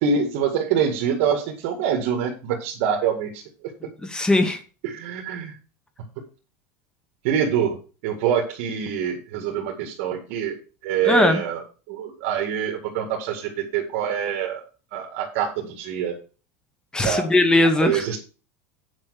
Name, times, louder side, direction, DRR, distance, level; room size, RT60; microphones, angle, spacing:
voice 1, 0.0-3.4 4.8-5.5 7.2-11.6 11.9-14.6 14.9-16.2 17.0-17.3 17.8-18.2, right 7 dB, 65° right, 1 dB, 2.1 m, -25 dB
voice 2, 4.0-4.6 11.0-11.4 16.9-18.0, left 2 dB, 10° left, 9 dB, 1.1 m, -19 dB
9.0 x 5.3 x 6.5 m, 0.35 s
supercardioid pair, 150°, 7 cm